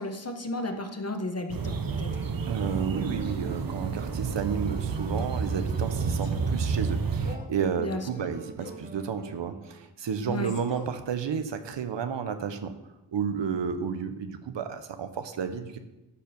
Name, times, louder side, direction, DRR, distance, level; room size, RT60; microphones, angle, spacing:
voice 1, 0.0-2.1 7.8-8.0 10.3-10.5, left 1 dB, 35° left, 6 dB, 1.1 m, -33 dB
sound 1, 1.5-10.0, right 2 dB, 20° right, 1.3 m, -48 dB
sound 2, 1.5-7.3, right 5 dB, 55° right, 0.8 m, -30 dB
voice 2, 2.5-12.7 13.1-15.8, right 7 dB, 85° right, 9 dB, 0.8 m, -32 dB
Male speech man speaking, 5.2-5.5 6.2-6.5 7.2-7.6 8.6-8.9 10.2-11.0, left 4 dB, 55° left, 1.2 m, -45 dB
12.5 x 4.6 x 5.2 m, 1.0 s
cardioid pair, 55°, 43 cm